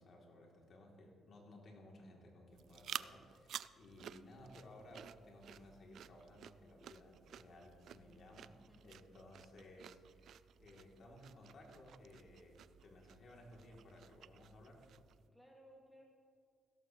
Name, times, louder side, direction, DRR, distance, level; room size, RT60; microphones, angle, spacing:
voice 1, 0.0-8.6 8.8-14.9, left 1 dB, 55° left, -1 dB, 2.8 m, -58 dB
sound 1, 2.5-15.3, right 9 dB, 70° right, 0.3 m, -53 dB
voice 2, 8.5-9.0 15.3-16.0, equal, ahead, -1 dB, 1.9 m, -63 dB
16.5 x 13.5 x 3.1 m, 2.2 s
cardioid pair, 90°, 0 cm